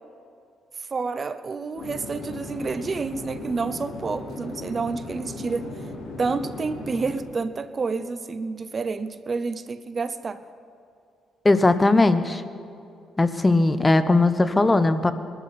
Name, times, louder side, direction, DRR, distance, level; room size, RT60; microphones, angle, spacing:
voice 1, 0.9-5.7 6.2-10.4, right 4 dB, 35° right, 12 dB, 0.6 m, -29 dB
Chatter / Fixed-wing aircraft airplane, 1.8-7.2, left 2 dB, 60° left, 4.3 m, -37 dB
voice 2, 11.4-12.4 13.2-15.1, left 2 dB, 20° left, 11 dB, 0.8 m, -19 dB
21.5 x 12.5 x 4.2 m, 2.5 s
cardioid pair, 90°, 0 cm